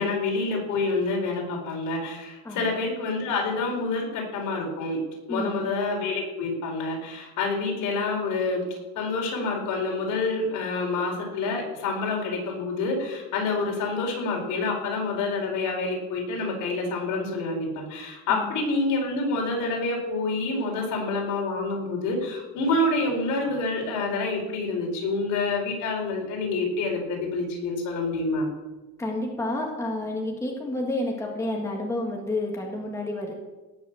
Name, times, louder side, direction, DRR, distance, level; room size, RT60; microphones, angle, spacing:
voice 1, 0.0-5.0 5.3-8.6 8.9-28.5, left 3 dB, 75° left, 0 dB, 4.7 m, -27 dB
voice 2, 5.3-5.7 18.3-18.6 29.0-33.3, left 1 dB, 10° left, 0 dB, 1.8 m, -30 dB
18.0 x 6.4 x 7.0 m, 1.1 s
cardioid pair, 175°, 31 cm